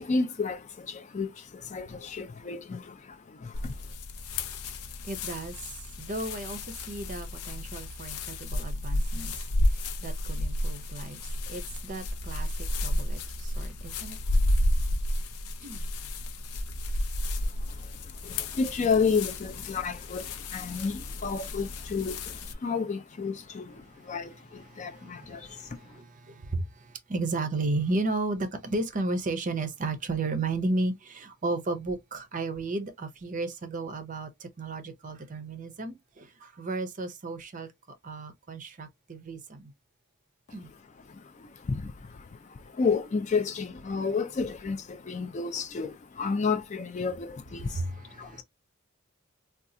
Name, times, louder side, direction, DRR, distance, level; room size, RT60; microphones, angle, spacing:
voice 1, 0.0-3.9 17.4-26.0 40.5-48.4, left 5 dB, 30° left, 0.3 m, -32 dB
sound 1, 3.5-22.5, left 1 dB, 90° left, 0.6 m, -32 dB
voice 2, 5.0-5.5 6.0-9.3 9.7-11.2 11.5-12.5 12.8-14.2 15.6-15.8 24.0-24.1 24.7-37.7 38.0-39.7 40.5-40.7 47.7-48.4, right 2 dB, 35° right, 0.5 m, -34 dB
3.8 x 2.3 x 2.6 m
head